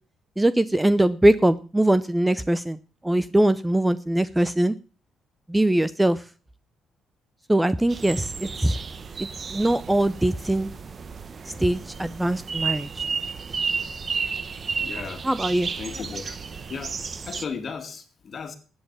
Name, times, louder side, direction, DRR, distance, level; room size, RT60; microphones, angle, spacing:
voice 1, 0.4-4.7 5.5-6.2 7.5-8.8 9.2-10.7 11.4-13.0 15.2-15.7, right 1 dB, 10° right, 0.5 m, -22 dB
sound 1, 7.9-17.4, right 5 dB, 35° right, 0.9 m, -32 dB
voice 2, 14.8-15.3 15.8-16.4 16.7-17.0 17.3-18.6, left 5 dB, 40° left, 2.4 m, -35 dB
13.0 x 8.9 x 7.0 m
cardioid pair, 115°, 0 cm